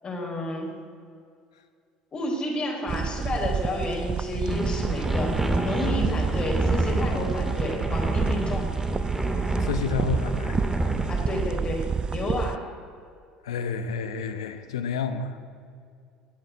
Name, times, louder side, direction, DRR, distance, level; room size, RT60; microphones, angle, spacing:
voice 1, 0.0-0.7 2.1-8.7 11.1-12.6, left 1 dB, 35° left, 0 dB, 4.3 m, -31 dB
sound 1, 2.9-12.6, right 6 dB, 30° right, 0.4 m, -29 dB
sound 2, 4.5-11.5, right 2 dB, 10° right, 2.5 m, -28 dB
voice 2, 9.6-10.6 13.4-15.4, left 6 dB, 85° left, 10 dB, 1.0 m, -30 dB
20.0 x 8.0 x 8.4 m, 2.3 s
hypercardioid pair, 70°, 3 cm